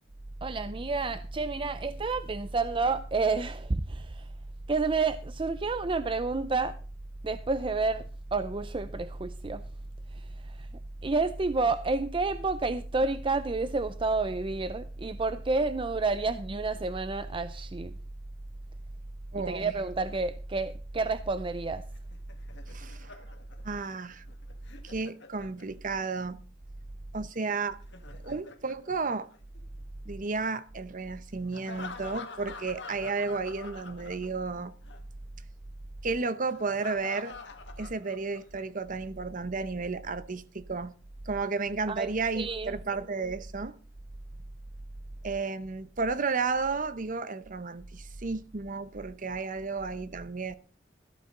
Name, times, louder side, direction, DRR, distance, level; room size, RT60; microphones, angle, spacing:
voice 1, 0.4-4.3 4.7-6.7 7.2-8.0 8.3-9.6 10.1-10.7 11.0-17.9 19.4-21.8 41.9-42.8, right 3 dB, 30° right, 0.5 m, -30 dB
voice 2, 19.3-19.7 22.7-23.2 23.6-24.2 24.8-26.4 27.1-27.8 28.2-29.3 30.0-34.7 36.0-37.3 37.8-40.9 41.3-43.7 45.2-50.5, right 4 dB, 45° right, 0.9 m, -33 dB
Laughter, 21.9-26.0 27.7-29.8 31.5-34.6 34.8-35.0 36.5-38.6, left 4 dB, 65° left, 1.8 m, -46 dB
14.5 x 12.5 x 3.8 m
head